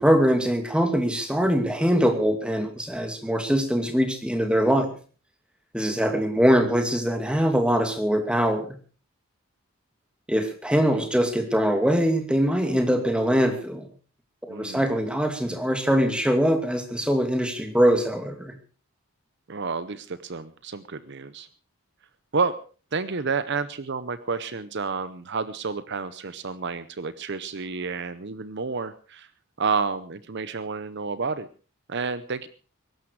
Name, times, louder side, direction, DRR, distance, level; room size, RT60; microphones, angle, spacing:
voice 1, 0.0-4.9 5.7-8.8 10.3-13.8 14.5-18.5, equal, 5° right, 6 dB, 2.5 m, -22 dB
voice 2, 14.5-14.9 19.5-21.5 22.3-22.6 22.9-29.3 29.6-31.5 31.9-32.5, right 4 dB, 50° right, 14 dB, 0.7 m, -30 dB
22.5 x 12.0 x 4.8 m, 0.39 s
head